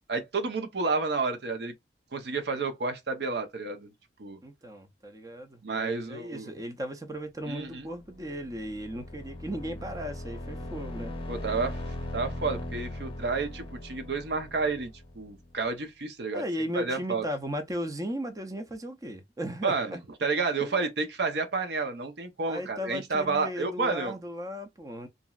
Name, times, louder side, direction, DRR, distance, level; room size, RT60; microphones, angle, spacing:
voice 1, 0.1-1.7 2.1-3.9 4.2-4.4 5.6-6.5 7.5-7.9 11.3-16.4 16.7-17.2 19.6-24.2, right 4 dB, 70° right, 0.6 m, -30 dB
voice 2, 4.4-11.1 16.3-20.0 20.6-20.8 22.5-25.1, equal, 20° right, 0.5 m, -36 dB
sound 1, 7.9-15.6, left 1 dB, 30° left, 0.8 m, -39 dB
3.0 x 2.6 x 2.3 m
head